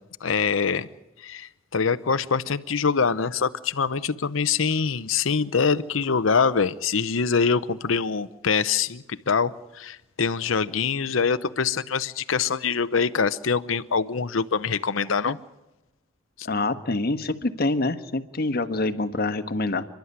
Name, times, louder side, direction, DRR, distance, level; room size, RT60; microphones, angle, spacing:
voice 1, 0.2-0.9 1.2-15.4 16.4-16.5, left 5 dB, 80° left, 0.8 m, -24 dB
voice 2, 16.4-19.8, left 2 dB, 50° left, 1.4 m, -26 dB
30.0 x 12.0 x 9.5 m
head